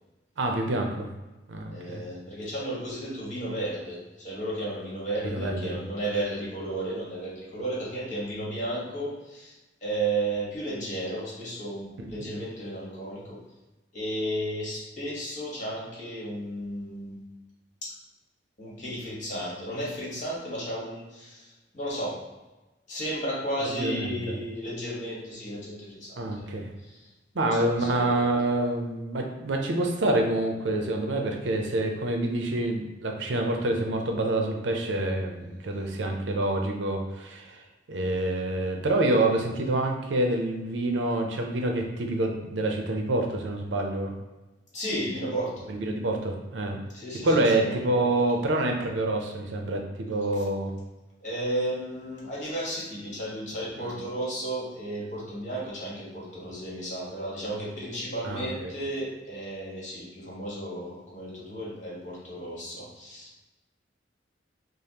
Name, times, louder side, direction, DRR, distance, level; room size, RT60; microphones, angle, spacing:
voice 1, 0.4-1.1 1.5-2.0 5.3-5.8 12.0-12.2 23.6-24.4 26.2-26.7 27.4-37.6 37.9-44.1 45.7-46.8 47.2-50.7 58.2-58.7, right 2 dB, 80° right, 2 dB, 0.6 m, -27 dB
voice 2, 1.7-13.4 13.9-17.2 17.8-17.9 18.6-22.2 22.9-28.2 44.7-45.7 46.9-48.1 50.3-50.4 51.2-63.4, right 1 dB, 40° left, -6 dB, 1.3 m, -34 dB
5.0 x 2.1 x 2.8 m, 1.1 s
head